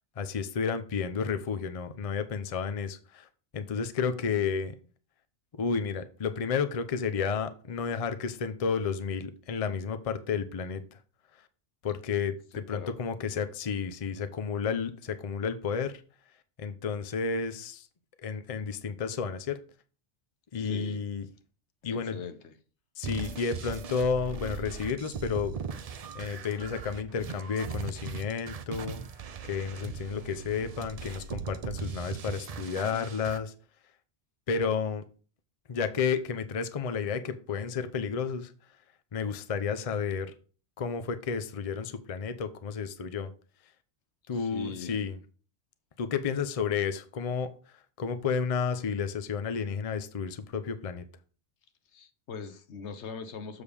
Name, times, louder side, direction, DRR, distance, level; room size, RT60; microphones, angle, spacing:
voice 1, 0.2-3.3 3.5-4.7 5.6-11.0 11.8-15.9 16.6-17.9 18.2-19.6 20.5-21.3 21.8-22.2 23.0-25.5 26.1-29.0 29.4-33.5 34.5-35.0 35.7-38.5 39.1-40.3 40.8-43.3 44.3-45.2 46.0-47.5 48.0-51.0, left 6 dB, 40° left, 0.6 m, -31 dB
voice 2, 12.5-13.0 20.5-21.0 21.8-22.6 44.3-45.0 51.9-53.6, left 5 dB, 80° left, 1.1 m, -41 dB
sound 1, 23.0-33.4, right 5 dB, 50° right, 0.5 m, -39 dB
7.1 x 6.4 x 3.4 m
omnidirectional pair, 1.1 m